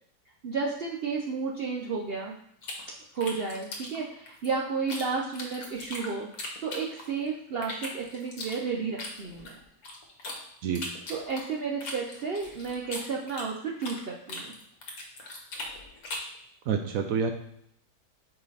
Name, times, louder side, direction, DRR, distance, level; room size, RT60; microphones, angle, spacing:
voice 1, 0.4-2.3 3.1-6.3 6.6-9.5 11.1-14.5, right 5 dB, 90° right, -1 dB, 0.5 m, -32 dB
sound 1, 2.6-5.0 5.3-7.2 7.6-10.4 10.7-14.0 14.3-16.4, left 2 dB, 60° left, 1.5 m, -39 dB
voice 2, 16.7-17.3, right 6 dB, 70° right, 5 dB, 0.9 m, -27 dB
5.1 x 4.8 x 4.0 m, 0.71 s
omnidirectional pair, 1.8 m